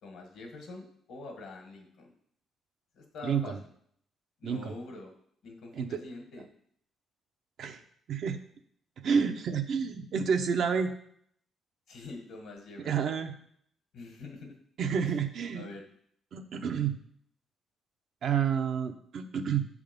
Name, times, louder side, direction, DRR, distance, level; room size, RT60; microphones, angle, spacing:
voice 1, 0.0-2.1 2.9-3.6 4.4-5.1 5.4-6.5 11.9-13.3 13.9-14.6 15.0-15.2 15.5-15.9, left 3 dB, 75° left, 3 dB, 1.6 m, -45 dB
voice 2, 3.2-3.6 4.4-4.7 5.7-5.9 7.6-7.8 8.1-8.4 9.0-10.9 12.8-13.3 14.8-15.7 16.3-17.0 18.2-19.7, right 7 dB, 65° right, 6 dB, 0.7 m, -29 dB
7.0 x 3.6 x 5.2 m, 0.66 s
cardioid pair, 90°, 0 cm